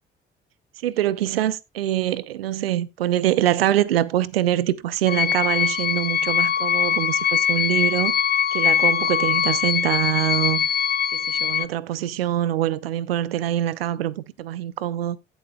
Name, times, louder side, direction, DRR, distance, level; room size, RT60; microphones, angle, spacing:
voice 1, 0.8-8.1 8.5-10.7 11.1-15.2, right 12 dB, 85° right, 0.5 m, -24 dB
sound 1, 5.1-11.6, left 8 dB, 35° left, 0.7 m, -22 dB
16.5 x 7.1 x 2.2 m
figure-of-eight pair, 45°, 29 cm